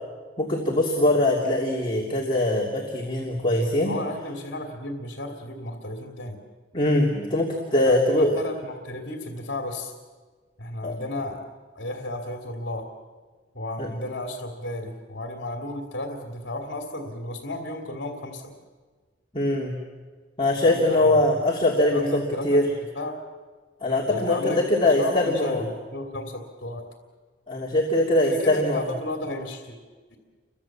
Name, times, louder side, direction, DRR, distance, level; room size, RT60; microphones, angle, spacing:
voice 1, 0.4-3.9 6.7-8.4 10.8-11.0 13.8-13.9 19.3-19.8 20.4-22.6 23.8-25.6 27.5-28.9, left 1 dB, 25° left, -3 dB, 3.0 m, -22 dB
voice 2, 3.8-6.4 7.8-9.9 10.6-11.4 11.7-12.9 13.5-18.5 20.6-21.3 21.9-22.6 22.9-23.2 24.1-24.6 25.0-26.8 28.2-29.8 30.1-30.2, left 1 dB, 70° left, 2 dB, 2.8 m, -33 dB
29.5 x 24.0 x 7.4 m, 1.5 s
head